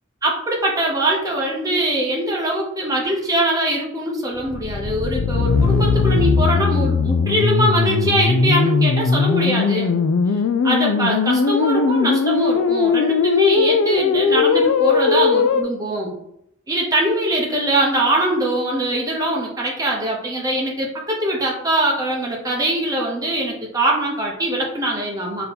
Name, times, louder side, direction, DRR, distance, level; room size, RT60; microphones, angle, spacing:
voice 1, 0.2-10.0 10.6-16.1 16.7-25.5, right 1 dB, 15° right, -1 dB, 0.7 m, -22 dB
sound 1, 4.4-15.6, left 5 dB, 75° left, 0.3 m, -19 dB
3.7 x 2.8 x 4.1 m, 0.77 s
head